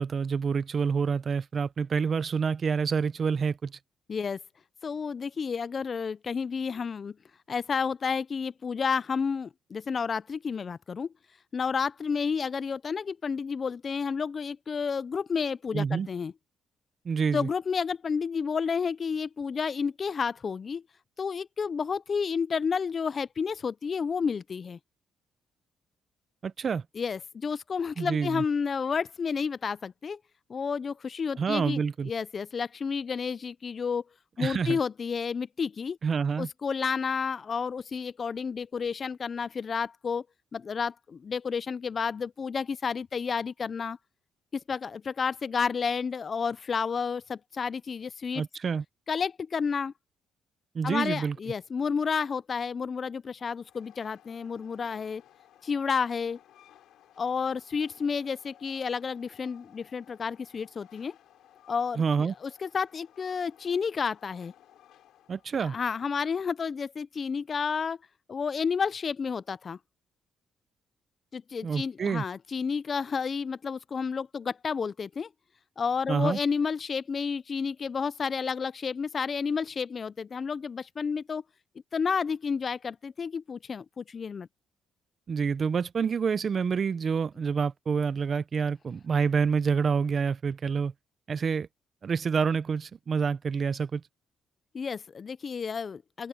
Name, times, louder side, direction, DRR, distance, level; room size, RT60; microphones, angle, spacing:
voice 1, 0.0-3.7 15.7-16.1 17.0-17.5 26.4-26.8 28.0-28.4 31.4-32.1 34.4-34.8 36.0-36.5 48.3-48.8 50.7-51.4 62.0-62.3 65.3-65.8 71.6-72.2 76.1-76.4 85.3-90.9 91.3-91.7 92.0-94.0, right 6 dB, 40° right, 0.5 m, -27 dB
voice 2, 4.8-7.1 7.5-11.1 11.5-16.3 17.3-20.8 21.2-24.8 27.0-30.2 30.5-34.0 34.4-36.0 36.4-40.2 40.5-44.0 44.5-48.4 49.1-49.9 50.8-55.2 55.6-56.4 57.2-61.2 61.7-64.5 65.6-68.0 68.3-69.8 71.3-75.3 75.8-81.4 81.9-84.5 94.7-96.3, left 6 dB, 35° left, 0.3 m, -31 dB
Train, 53.6-65.5, left 11 dB, 80° left, 2.8 m, -58 dB
open air
cardioid pair, 135°, 0 cm